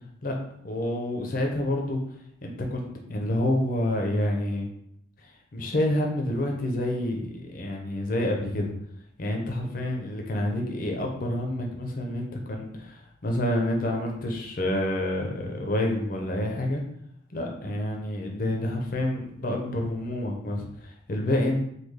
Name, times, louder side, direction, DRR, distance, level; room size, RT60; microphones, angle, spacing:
voice 1, 0.6-2.0 2.4-4.7 5.5-8.7 9.2-16.8 17.3-21.6, left 1 dB, 50° left, 1 dB, 0.6 m, -28 dB
3.2 x 2.3 x 3.6 m, 0.72 s
head